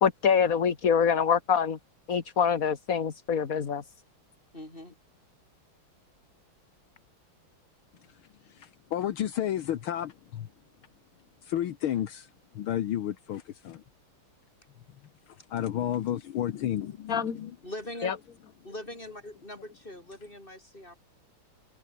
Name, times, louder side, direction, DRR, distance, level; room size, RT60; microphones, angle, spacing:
voice 1, 0.0-1.8 2.1-3.8 17.1-17.4 18.0-18.1, left 7 dB, 45° left, 1.9 m, -25 dB
voice 2, 4.5-4.9 17.6-18.1 18.6-21.0, left 1 dB, 25° left, 8.2 m, -42 dB
voice 3, 8.5-10.5 11.4-13.8 15.5-17.6, left 11 dB, 75° left, 1.9 m, -32 dB
open air
omnidirectional pair, 2.3 m